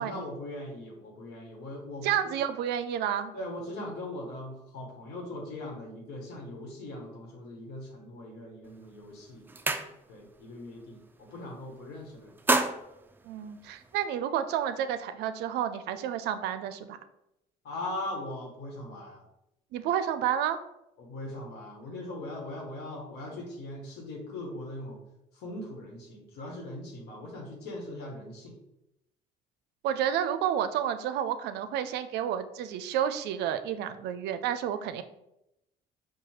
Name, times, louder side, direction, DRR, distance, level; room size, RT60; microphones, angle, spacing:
voice 1, 0.0-2.4 3.3-9.5 10.1-12.3 17.6-19.2 21.0-25.0 25.3-28.5, left 1 dB, 75° left, 0 dB, 1.2 m, -40 dB
voice 2, 2.0-3.3 13.2-17.0 19.7-20.6 29.8-35.0, right 9 dB, 80° right, 11 dB, 0.4 m, -30 dB
sound 1, 8.7-8.9 9.2-10.4 10.7-11.0 11.3-11.9 12.2-14.1, right 3 dB, 10° right, 0.3 m, -31 dB
4.7 x 2.3 x 4.3 m, 0.86 s
cardioid pair, 110°, 17 cm